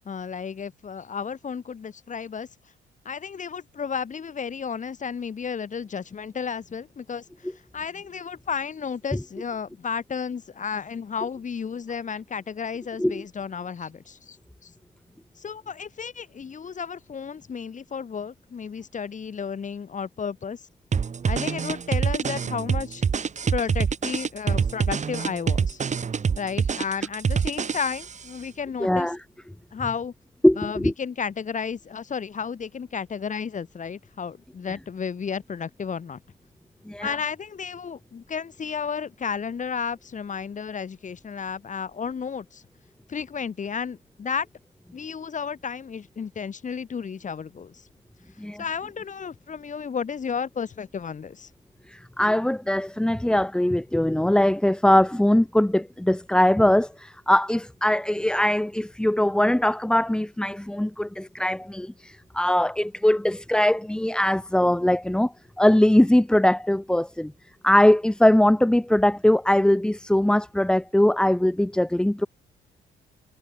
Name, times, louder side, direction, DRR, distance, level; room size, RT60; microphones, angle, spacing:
voice 1, 0.0-2.5 3.1-7.2 7.7-14.4 14.6-14.7 15.4-20.6 21.3-23.0 23.5-25.8 26.4-29.1 29.7-30.1 30.6-36.2 37.0-42.6 43.1-44.5 44.9-47.8 48.6-51.5, left 6 dB, 40° left, 1.8 m, -32 dB
sound 1, 20.9-28.2, right 6 dB, 35° right, 1.3 m, -25 dB
voice 2, 28.8-29.2 30.4-30.9 36.9-37.1 48.4-48.6 51.9-67.3 67.6-72.3, left 1 dB, 5° left, 0.7 m, -21 dB
cardioid pair, 90°, 20 cm